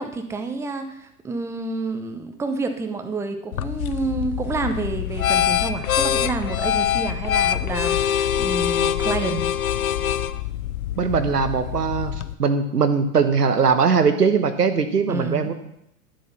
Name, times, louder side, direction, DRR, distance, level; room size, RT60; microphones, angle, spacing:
voice 1, 0.0-9.4 15.1-15.5, right 3 dB, 5° right, 7 dB, 0.7 m, -29 dB
sound 1, 3.5-12.3, left 10 dB, 65° left, 0.7 m, -24 dB
voice 2, 11.0-15.5, right 5 dB, 80° right, 9 dB, 1.3 m, -20 dB
11.0 x 7.7 x 5.8 m, 0.78 s
figure-of-eight pair, 100°, 46 cm